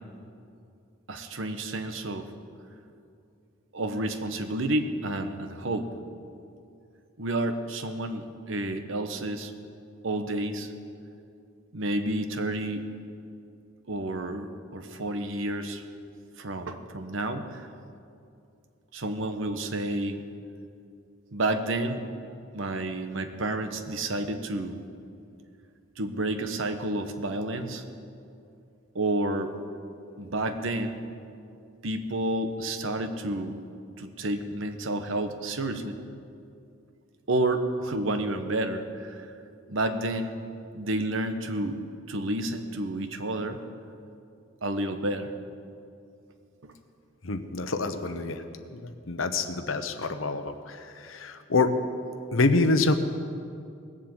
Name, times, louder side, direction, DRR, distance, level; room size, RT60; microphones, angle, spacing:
voice 1, 1.1-2.3 3.7-5.9 7.2-9.5 10.0-10.7 11.7-12.9 13.9-15.8 16.4-17.7 18.9-20.2 21.3-22.0 22.5-24.8 26.0-27.8 28.9-29.5 30.2-31.0 31.8-33.6 34.0-36.0 37.3-39.3 39.7-40.3 40.7-43.6 44.6-45.3 46.6-46.7, right 1 dB, 75° right, 7 dB, 1.1 m, -30 dB
voice 2, 47.2-48.4 48.7-51.7 52.3-53.0, left 3 dB, 85° left, 9 dB, 1.0 m, -26 dB
19.0 x 7.5 x 8.0 m, 2.5 s
head